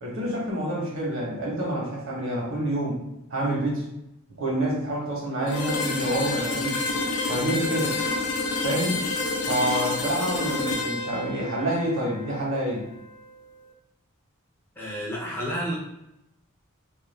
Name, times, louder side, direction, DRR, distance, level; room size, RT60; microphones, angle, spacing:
voice 1, 0.0-3.0 3.3-3.8 4.4-6.8 7.3-7.9 8.6-9.0 9.5-12.9, right 1 dB, 60° right, -3 dB, 0.9 m, -27 dB
sound 1, 5.5-13.3, left 3 dB, 85° left, 0.6 m, -29 dB
voice 2, 14.8-15.7, equal, 10° left, -5 dB, 0.5 m, -30 dB
2.4 x 2.2 x 3.2 m, 0.86 s
head